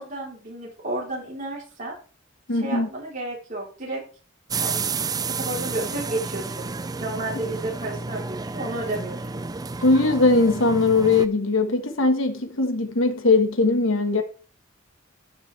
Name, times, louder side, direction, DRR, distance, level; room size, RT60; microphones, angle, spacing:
voice 1, 0.0-1.9 2.6-4.0 4.6-4.9 5.2-6.7 7.0-9.4, right 2 dB, 40° right, 3.9 m, -32 dB
voice 2, 2.5-2.9 9.8-14.2, left 3 dB, 75° left, 1.7 m, -20 dB
sound 1, 4.5-11.3, right 4 dB, 20° right, 0.4 m, -31 dB
14.0 x 7.5 x 3.4 m
head